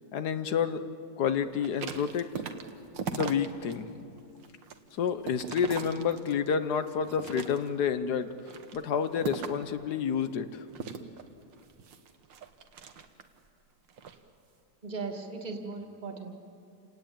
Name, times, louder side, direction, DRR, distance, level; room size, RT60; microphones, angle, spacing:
voice 1, 0.1-0.8 1.2-2.3 3.1-4.1 4.9-8.3 8.7-10.6, left 7 dB, 65° left, 11 dB, 1.4 m, -29 dB
sound 1, 1.5-3.8 4.2-6.5 7.0-7.9 8.4-9.7 10.7-13.4 13.9-14.2, right 6 dB, 85° right, 1.9 m, -39 dB
voice 2, 14.8-16.4, right 4 dB, 25° right, 4 dB, 2.2 m, -38 dB
28.5 x 18.0 x 8.9 m, 2.7 s
omnidirectional pair, 2.0 m